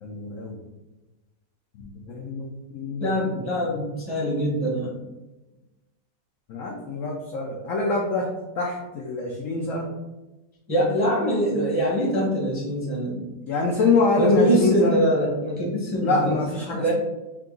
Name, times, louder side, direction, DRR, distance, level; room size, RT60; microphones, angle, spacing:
voice 1, 0.0-0.6 1.7-3.1 6.5-9.9 13.4-15.0 16.0-16.9, left 3 dB, 80° left, 0 dB, 0.7 m, -25 dB
voice 2, 3.0-5.0 10.7-13.2 14.2-16.4 16.7-16.9, equal, 10° right, -5 dB, 0.6 m, -23 dB
3.5 x 2.8 x 3.7 m, 1.1 s
omnidirectional pair, 2.0 m